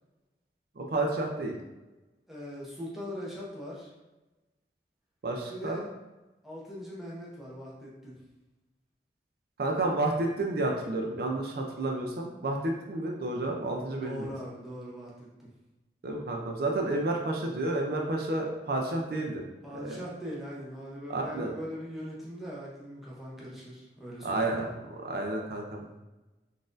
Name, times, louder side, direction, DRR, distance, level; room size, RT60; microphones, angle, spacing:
voice 1, 0.8-1.6 5.2-5.9 9.6-14.3 16.0-19.4 19.7-20.0 21.1-21.5 24.2-26.0, right 2 dB, 55° right, 1 dB, 0.4 m, -31 dB
voice 2, 2.3-3.9 5.5-5.9 6.4-8.2 13.9-15.5 19.6-24.8, equal, ahead, -6 dB, 0.6 m, -41 dB
4.0 x 2.5 x 2.5 m, 1.1 s
head